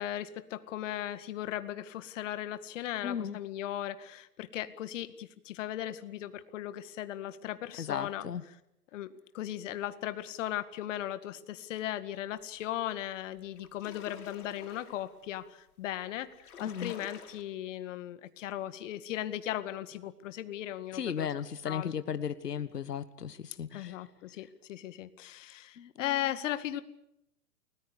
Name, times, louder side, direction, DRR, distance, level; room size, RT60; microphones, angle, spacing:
voice 1, 0.0-8.2 8.9-21.3 21.7-21.9 23.7-26.8, left 12 dB, 50° left, 12 dB, 2.0 m, -37 dB
voice 2, 3.0-3.4 7.8-8.4 16.6-16.9 20.9-24.1 25.8-26.2, left 8 dB, 90° left, 13 dB, 1.4 m, -36 dB
sound 1, 12.9-13.0 13.4-15.2 15.9-16.0 16.2-17.4, left 7 dB, 70° left, 5.5 m, -49 dB
29.5 x 19.5 x 6.8 m, 0.81 s
hypercardioid pair, 130°, 46 cm